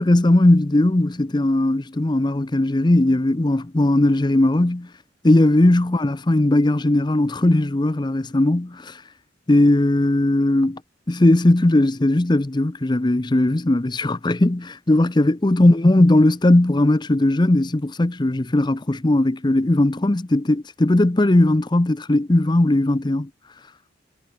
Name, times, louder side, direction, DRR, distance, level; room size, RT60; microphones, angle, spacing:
voice 1, 0.0-4.9 5.2-8.9 9.5-10.8 11.1-23.3, left 1 dB, 25° left, 0.6 m, -18 dB
head